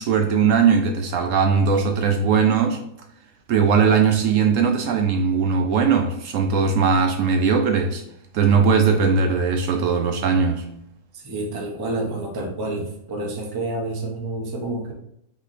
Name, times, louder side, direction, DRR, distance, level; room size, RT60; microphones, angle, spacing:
voice 1, 0.0-2.8 3.5-8.0 8.3-10.6, right 6 dB, 70° right, 4 dB, 0.9 m, -19 dB
voice 2, 11.2-14.9, right 2 dB, 25° right, 0 dB, 0.5 m, -28 dB
3.9 x 3.0 x 4.0 m, 0.76 s
omnidirectional pair, 1.6 m